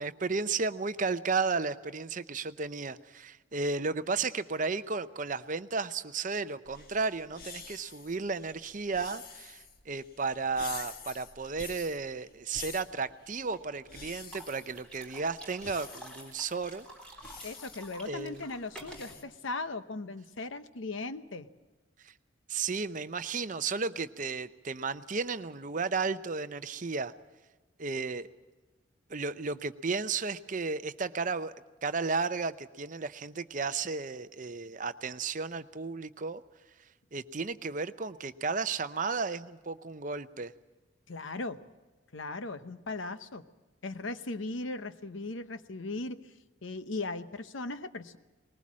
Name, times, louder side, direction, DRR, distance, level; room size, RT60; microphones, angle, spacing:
voice 1, 0.0-16.9 18.0-18.5 22.0-22.1 22.5-27.1 27.8-28.3 29.1-31.5 31.8-36.4 37.1-40.5, right 4 dB, 40° right, 12 dB, 0.6 m, -33 dB
sound 1, 6.7-19.2, left 5 dB, 45° left, 1.5 m, -48 dB
sound 2, 13.5-13.8 14.3-19.2, right 1 dB, 5° left, 3.7 m, -49 dB
voice 2, 17.4-21.5 41.1-41.6 42.1-43.4 43.8-46.3 46.6-48.2, left 3 dB, 70° left, 11 dB, 0.9 m, -38 dB
20.5 x 19.5 x 7.4 m, 1.2 s
head